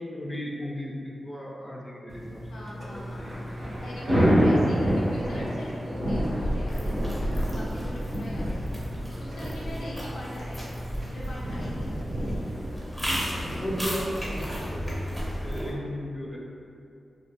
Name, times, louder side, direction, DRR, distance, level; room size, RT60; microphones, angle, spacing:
voice 1, 0.0-2.4 2.8-3.4 8.9-9.1 13.5-15.1 15.4-16.4, equal, 15° left, -3 dB, 0.5 m, -35 dB
sound 1, 2.1-11.8, equal, 55° right, 0.3 m, -39 dB
voice 2, 2.5-8.8 9.2-10.7 11.0-12.2 13.7-13.9, left 1 dB, 85° left, -6 dB, 0.4 m, -42 dB
Thunder / Rain, 2.9-15.6, equal, 80° right, 1.1 m, -29 dB
sound 2, 6.7-15.7, equal, 5° right, 0.8 m, -34 dB
2.2 x 2.1 x 2.8 m, 2.5 s
cardioid pair, 45°, 0 cm